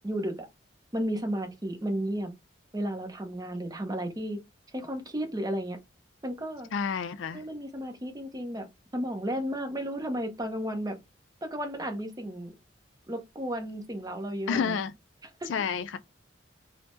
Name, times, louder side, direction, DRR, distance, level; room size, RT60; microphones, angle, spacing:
voice 1, 0.0-0.5 0.9-2.3 2.7-4.4 4.7-5.8 6.2-6.7 7.3-8.7 8.9-11.0 11.4-12.5 13.1-14.8 15.4-15.5, equal, 20° right, 0.6 m, -33 dB
voice 2, 6.7-7.4 14.5-14.9 15.5-16.0, left 6 dB, 80° left, 0.4 m, -29 dB
3.3 x 2.1 x 3.0 m
head